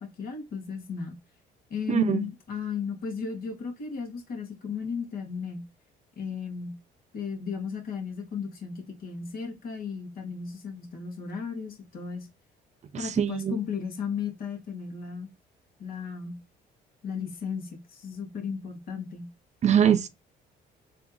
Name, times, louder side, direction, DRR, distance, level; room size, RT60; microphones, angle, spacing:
voice 1, 0.2-1.1 1.7-5.6 6.2-6.8 7.1-12.3 13.0-15.3 15.8-16.4 17.0-19.3, left 6 dB, 60° left, 1.8 m, -35 dB
voice 2, 1.9-2.3 12.9-13.6 19.6-20.1, right 8 dB, 40° right, 0.6 m, -23 dB
3.4 x 2.9 x 3.9 m
cardioid pair, 110°, 17 cm